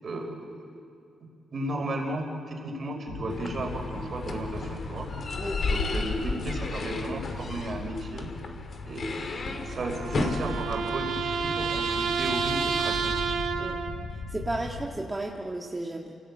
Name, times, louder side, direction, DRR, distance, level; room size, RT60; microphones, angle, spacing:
voice 1, 0.0-0.8 1.5-5.1 5.6-8.3 8.9-9.2 9.7-13.3, right 1 dB, 45° right, 3 dB, 5.0 m, -34 dB
sound 1, 3.1-14.9, left 4 dB, 80° left, 5.8 m, -39 dB
sound 2, 3.3-10.9, left 3 dB, 45° left, 2.8 m, -33 dB
sound 3, 9.3-14.1, right 6 dB, 75° right, 1.8 m, -30 dB
voice 2, 14.3-16.1, right 2 dB, 15° right, 0 dB, 1.6 m, -33 dB
28.0 x 17.5 x 8.8 m, 2.6 s
cardioid pair, 115°, 0 cm